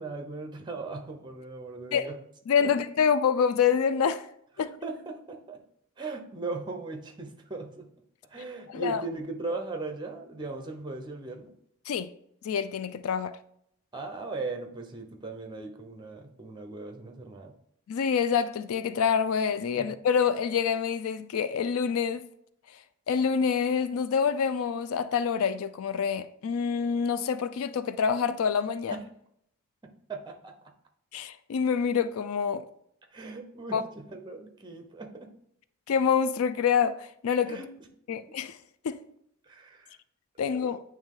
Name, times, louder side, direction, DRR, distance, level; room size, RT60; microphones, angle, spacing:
voice 1, 0.0-2.2 2.6-2.7 4.6-5.6 6.0-7.9 8.3-11.5 13.9-17.5 19.7-19.9 29.8-30.6 33.1-35.3 37.5-37.7 39.4-40.0, right 3 dB, 20° right, 0.7 m, -38 dB
voice 2, 2.5-4.3 4.6-4.7 8.7-9.0 11.9-12.1 12.4-13.4 17.9-22.3 22.7-22.8 23.1-29.0 31.1-32.6 33.7-33.8 35.9-37.6 38.1-38.6 38.8-39.0 40.4-40.8, left 7 dB, 85° left, 0.4 m, -26 dB
8.7 x 3.1 x 3.7 m
head